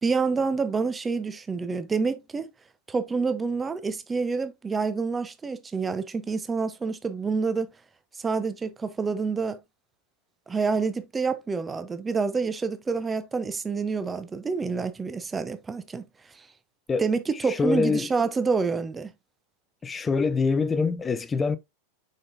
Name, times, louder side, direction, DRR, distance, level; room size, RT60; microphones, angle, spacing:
voice 1, 0.0-2.5 2.9-7.7 8.2-9.6 10.5-16.1 17.0-19.1, right 4 dB, 15° right, 0.8 m, -27 dB
voice 2, 17.5-18.1 19.8-21.6, left 4 dB, 15° left, 0.6 m, -25 dB
6.5 x 5.5 x 2.7 m
figure-of-eight pair, 90°, 0 cm